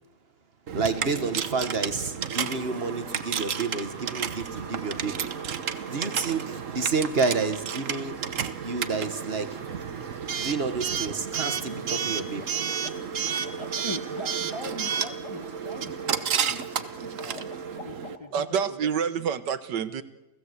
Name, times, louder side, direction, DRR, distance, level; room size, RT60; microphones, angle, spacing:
voice 1, 0.7-5.2 5.9-8.2 8.6-9.6 10.4-12.5, right 4 dB, 35° right, 1.7 m, -29 dB
Coin (dropping) / Alarm, 0.7-18.2, right 7 dB, 55° right, 1.3 m, -32 dB
sound 1, 2.4-17.8, right 4 dB, 70° right, 2.7 m, -47 dB
sound 2, 9.0-10.2 11.9-12.0 12.3-18.5, left 4 dB, 90° left, 3.0 m, -49 dB
voice 2, 13.6-17.5 17.8-19.2, left 1 dB, 20° left, 1.2 m, -41 dB
voice 3, 18.3-20.0, right 7 dB, 85° right, 1.7 m, -27 dB
29.0 x 17.5 x 8.2 m
omnidirectional pair, 1.8 m